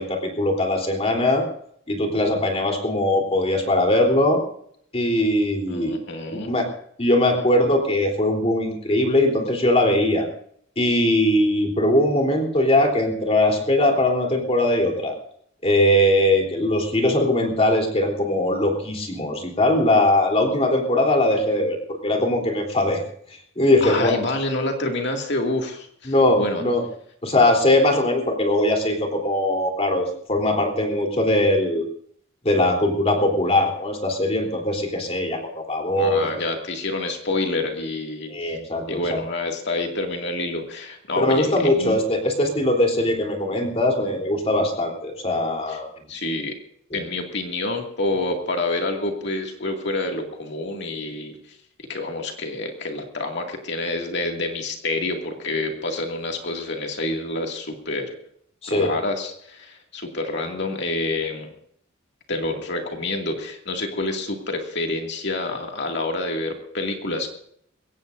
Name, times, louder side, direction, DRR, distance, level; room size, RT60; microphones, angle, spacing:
voice 1, 0.0-1.4 1.9-4.4 4.9-6.0 6.3-6.6 7.0-10.3 10.8-15.2 15.6-23.0 23.6-24.3 26.1-26.8 27.2-31.8 32.4-36.3 38.3-38.8 41.2-45.9 46.9-47.0 58.6-58.9, left 1 dB, 30° left, 1 dB, 3.5 m, -20 dB
voice 2, 5.7-6.5 23.8-26.6 36.0-38.6 38.9-42.0 45.7-45.8 46.1-46.6 46.9-51.3 51.9-58.1 58.7-61.5 62.3-67.3, left 2 dB, 55° left, 2 dB, 2.3 m, -28 dB
22.5 x 17.5 x 2.6 m, 0.65 s
head